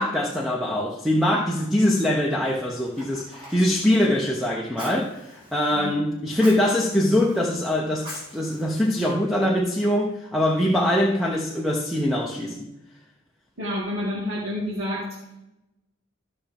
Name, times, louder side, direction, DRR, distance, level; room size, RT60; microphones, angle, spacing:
voice 1, 0.0-12.7, left 1 dB, ahead, -3 dB, 0.8 m, -23 dB
Fire, 2.4-9.6, right 1 dB, 25° right, 3.7 m, -46 dB
voice 2, 13.6-15.2, left 1 dB, 80° right, -5 dB, 2.1 m, -29 dB
14.0 x 5.8 x 3.5 m, 0.92 s
head